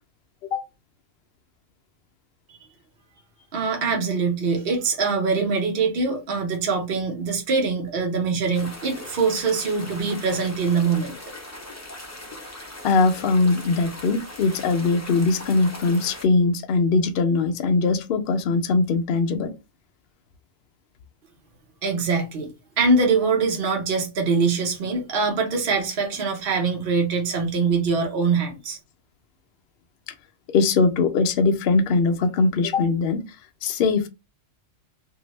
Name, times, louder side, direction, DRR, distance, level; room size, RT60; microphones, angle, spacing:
voice 1, 3.5-11.2 21.8-22.5 22.8-28.8, right 4 dB, 50° right, 1.0 m, -23 dB
sound 1, 8.5-16.2, left 1 dB, 20° left, 0.4 m, -40 dB
voice 2, 12.8-19.5 30.1-30.2 30.5-33.2 33.6-34.1, left 3 dB, 60° left, 0.7 m, -21 dB
2.7 x 2.5 x 3.1 m
omnidirectional pair, 1.3 m